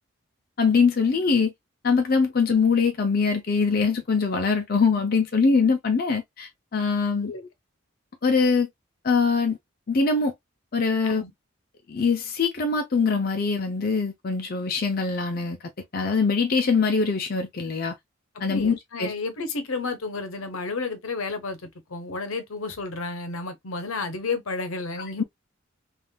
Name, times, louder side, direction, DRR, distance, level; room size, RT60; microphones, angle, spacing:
voice 1, 0.6-1.5 1.8-7.3 8.2-8.7 9.0-9.6 9.9-10.3 10.7-11.2 11.9-15.6 15.9-18.0 18.4-19.1 25.0-25.1, left 4 dB, 45° left, 0.5 m, -23 dB
voice 2, 18.5-25.3, left 3 dB, 75° left, 0.8 m, -32 dB
3.6 x 2.5 x 2.3 m
head